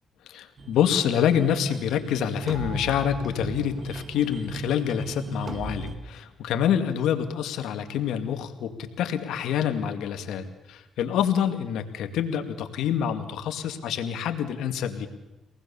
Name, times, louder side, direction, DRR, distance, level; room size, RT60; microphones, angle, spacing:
voice 1, 0.3-15.1, left 9 dB, 85° left, 7 dB, 2.2 m, -27 dB
sound 1, 0.6-6.0, right 3 dB, 40° right, 2.3 m, -37 dB
25.5 x 19.0 x 7.1 m, 1.1 s
cardioid pair, 90°, 0 cm